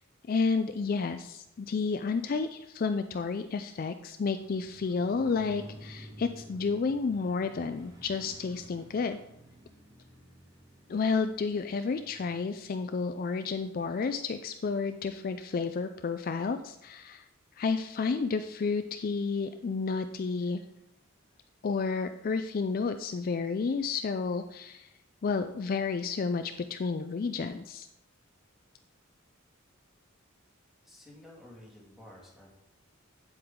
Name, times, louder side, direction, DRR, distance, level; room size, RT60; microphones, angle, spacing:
voice 1, 0.3-9.2 10.9-17.3 17.6-20.6 21.6-24.9 25.2-27.9, left 4 dB, 45° left, 9 dB, 0.4 m, -31 dB
Motorcycle, 4.3-14.5 14.8-14.9, equal, 15° right, 1.3 m, -53 dB
voice 2, 30.8-32.6, left 1 dB, ahead, -3 dB, 2.2 m, -52 dB
8.8 x 7.7 x 3.7 m, 0.80 s
head